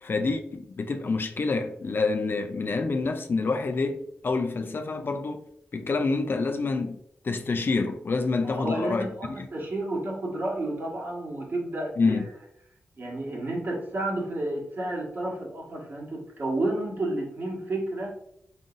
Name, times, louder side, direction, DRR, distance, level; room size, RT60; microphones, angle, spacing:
voice 1, 0.0-5.4 5.7-9.5 12.0-12.3, left 3 dB, 55° left, 0.5 m, -27 dB
voice 2, 8.4-12.2 13.0-18.1, right 2 dB, 55° right, 1.7 m, -31 dB
5.0 x 3.8 x 2.6 m
cardioid pair, 60°, 4 cm